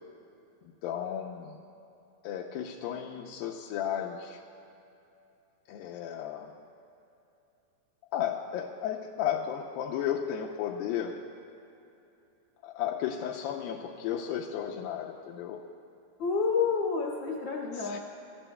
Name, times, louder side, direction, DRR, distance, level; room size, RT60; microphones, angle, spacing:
voice 1, 0.8-1.6 2.2-4.4 5.7-6.5 8.1-11.2 12.6-15.6 17.8-18.0, left 9 dB, 80° left, -1 dB, 2.2 m, -34 dB
voice 2, 16.2-18.0, left 5 dB, 60° left, -3 dB, 1.6 m, -29 dB
25.0 x 13.5 x 2.2 m, 2.8 s
omnidirectional pair, 4.6 m